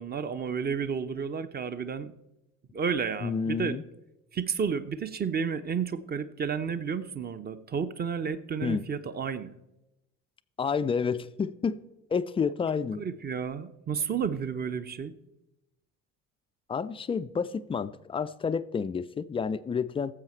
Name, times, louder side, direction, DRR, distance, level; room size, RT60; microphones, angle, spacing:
voice 1, 0.0-2.1 2.7-3.8 4.3-9.5 13.0-15.1, right 6 dB, 25° right, 13 dB, 0.7 m, -31 dB
voice 2, 3.2-3.8 8.6-8.9 10.6-11.8 12.1-13.0 16.7-20.1, left 6 dB, 15° left, 14 dB, 0.3 m, -30 dB
16.0 x 7.6 x 4.4 m, 0.93 s
figure-of-eight pair, 55°, 39 cm